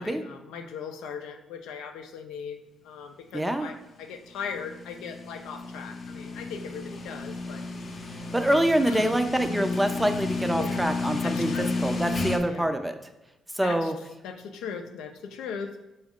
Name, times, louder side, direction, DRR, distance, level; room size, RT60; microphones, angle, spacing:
voice 1, 0.0-7.6 8.7-9.2 10.5-10.8 11.2-11.7 12.5-12.7 13.6-13.9 14.2-15.7, left 6 dB, 90° left, 6 dB, 0.4 m, -38 dB
voice 2, 3.3-3.7 8.3-13.0 13.5-13.9, right 1 dB, 10° right, 7 dB, 0.4 m, -25 dB
sound 1, 4.0-12.4, left 3 dB, 45° left, 0.6 m, -32 dB
6.1 x 2.4 x 3.6 m, 0.97 s
cardioid pair, 90°, 0 cm